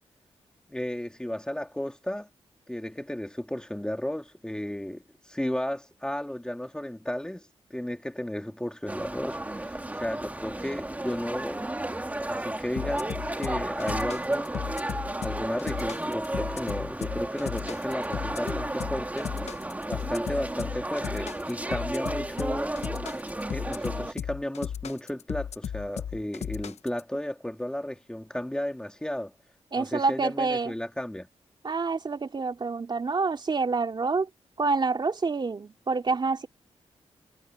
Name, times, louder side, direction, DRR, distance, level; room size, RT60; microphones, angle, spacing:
voice 1, 0.7-2.3 2.7-11.7 12.3-14.8 15.2-19.3 19.9-22.7 23.5-29.3 29.7-31.3, left 1 dB, 5° left, 3.0 m, -34 dB
sound 1, 8.9-24.1, right 1 dB, 15° right, 2.3 m, -33 dB
sound 2, 12.8-27.0, left 8 dB, 85° left, 1.0 m, -35 dB
voice 2, 29.7-30.7 31.6-34.3 34.6-36.5, right 4 dB, 45° right, 3.4 m, -27 dB
cardioid pair, 85°, 11 cm